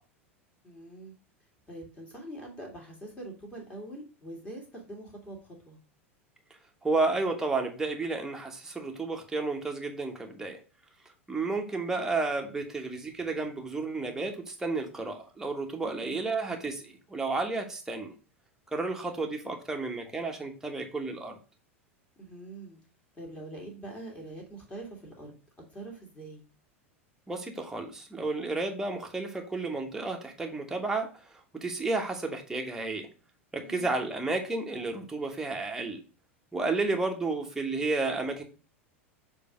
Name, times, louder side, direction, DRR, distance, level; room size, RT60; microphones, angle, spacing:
voice 1, 0.6-1.1 1.7-5.8 15.8-16.2 19.1-19.2 22.2-22.8 23.1-25.3 25.7-26.4 33.6-33.9, right 1 dB, 15° left, 0 dB, 2.0 m, -44 dB
voice 2, 6.8-10.6 11.3-18.1 18.7-21.4 27.3-33.1 33.5-36.0 36.5-38.4, right 3 dB, 5° right, 2 dB, 1.1 m, -32 dB
6.7 x 2.8 x 5.0 m, 0.35 s
figure-of-eight pair, 85°, 7 cm